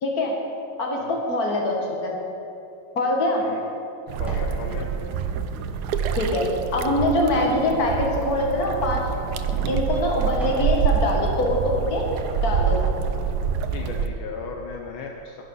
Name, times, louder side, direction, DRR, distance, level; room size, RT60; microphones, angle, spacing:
voice 1, 0.0-0.3 0.8-2.1 3.0-3.5 6.1-6.5 6.7-9.0 9.7-12.0 12.4-12.8, left 1 dB, 45° left, 0 dB, 2.1 m, -23 dB
sound 1, 2.7-4.6 5.1-7.7 8.3-8.5 9.2-9.4 9.9-10.7 11.2-11.3, right 1 dB, ahead, 2.0 m, -42 dB
sound 2, 4.1-14.1, right 7 dB, 75° right, 0.9 m, -26 dB
voice 2, 4.2-4.9 13.7-15.4, left 5 dB, 80° left, 2 dB, 1.6 m, -35 dB
10.5 x 10.5 x 5.5 m, 2.9 s
omnidirectional pair, 2.3 m